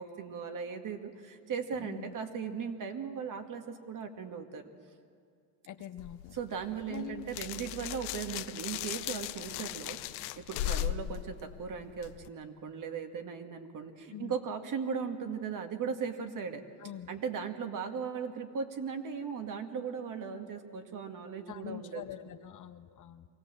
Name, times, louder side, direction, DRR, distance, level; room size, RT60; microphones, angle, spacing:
voice 1, 0.0-4.7 6.3-16.6 17.1-22.0, right 6 dB, 45° right, 6 dB, 2.1 m, -38 dB
voice 2, 1.8-2.1 5.7-6.4 6.9-7.3 14.1-14.4 16.8-17.1 21.5-23.3, left 11 dB, 45° left, 10 dB, 1.0 m, -44 dB
sound 1, 6.0-12.3, left 13 dB, 80° left, 0.8 m, -38 dB
24.0 x 17.0 x 7.7 m, 2.2 s
supercardioid pair, 95°, 44 cm